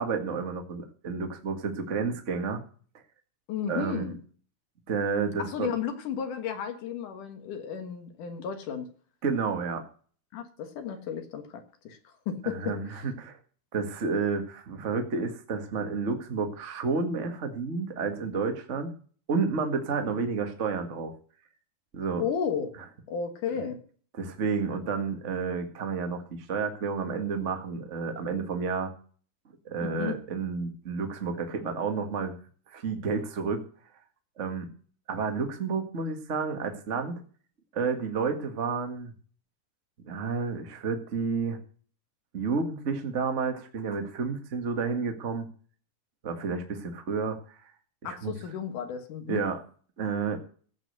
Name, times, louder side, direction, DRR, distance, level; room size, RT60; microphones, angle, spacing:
voice 1, 0.0-2.6 3.7-4.1 4.9-5.7 9.2-9.8 12.4-13.4 13.7-18.9 19.3-21.1 21.9-22.2 24.2-28.9 29.6-32.3 32.7-33.6 34.4-34.7 35.1-37.2 37.7-39.1 40.0-41.6 42.3-45.5 46.2-47.4 48.0-48.3 49.3-49.6 50.0-50.4, right 5 dB, 65° right, 0.7 m, -30 dB
voice 2, 3.5-4.2 5.4-8.9 10.3-12.8 22.2-22.7 23.1-23.8 29.8-30.2 48.0-49.4, left 7 dB, 65° left, 2.6 m, -33 dB
15.5 x 5.3 x 7.9 m
omnidirectional pair, 4.4 m